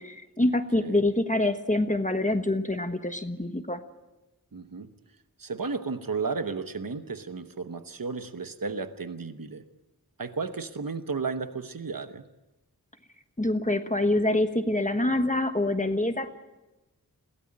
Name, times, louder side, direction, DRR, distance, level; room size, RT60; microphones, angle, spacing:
voice 1, 0.0-3.8 13.4-16.3, left 1 dB, 20° left, 7 dB, 1.3 m, -26 dB
voice 2, 4.5-4.9 5.4-9.6 10.2-12.3, right 4 dB, 65° right, 9 dB, 1.1 m, -33 dB
22.0 x 17.0 x 8.7 m, 1.1 s
wide cardioid pair, 45°, 36 cm